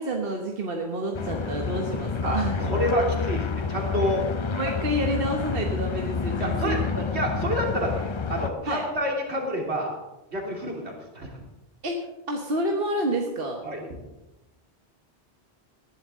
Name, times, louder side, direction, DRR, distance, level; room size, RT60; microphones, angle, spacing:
voice 1, 0.0-2.6 4.5-7.1 8.7-8.9 11.8-13.6, right 1 dB, 60° right, 1 dB, 1.5 m, -29 dB
sound 1, 1.1-8.5, left 5 dB, 35° left, 0.5 m, -29 dB
voice 2, 2.2-4.2 6.4-6.8 7.1-9.9 10.3-11.3 13.6-13.9, equal, 75° right, 0 dB, 3.2 m, -28 dB
20.0 x 11.0 x 3.7 m, 1.0 s
omnidirectional pair, 1.1 m